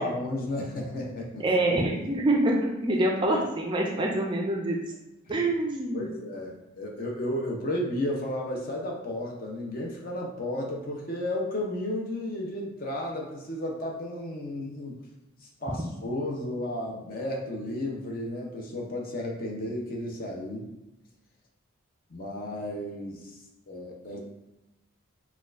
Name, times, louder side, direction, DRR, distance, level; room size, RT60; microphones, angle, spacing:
voice 1, 0.0-1.4 5.3-5.4 5.9-15.0 15.6-20.7 22.1-23.3 23.7-24.2, left 1 dB, 45° left, 0 dB, 0.6 m, -33 dB
voice 2, 1.4-4.8 5.3-6.0, right 1 dB, 20° right, 0 dB, 0.3 m, -25 dB
4.2 x 2.3 x 2.4 m, 0.95 s
head